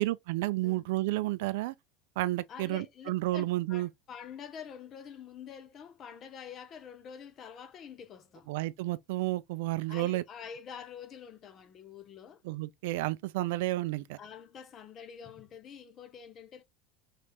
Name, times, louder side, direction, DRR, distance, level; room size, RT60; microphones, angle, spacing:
voice 1, 0.0-1.7 2.2-3.9 8.5-10.2 12.4-14.2, right 18 dB, 75° right, 0.4 m, -31 dB
voice 2, 2.5-8.5 9.9-12.4 14.2-16.6, left 7 dB, 25° left, 0.6 m, -47 dB
5.1 x 3.3 x 2.8 m
cardioid pair, 175°, 0 cm